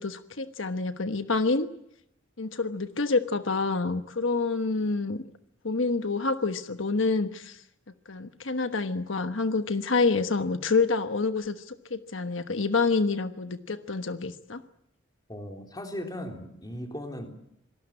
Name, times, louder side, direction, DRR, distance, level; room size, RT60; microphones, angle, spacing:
voice 1, 0.0-1.7 2.4-5.2 5.6-7.6 8.1-14.6, left 3 dB, 80° left, 9 dB, 1.2 m, -27 dB
voice 2, 15.3-17.3, left 1 dB, 20° left, 3 dB, 3.5 m, -37 dB
26.0 x 19.5 x 8.7 m, 0.79 s
head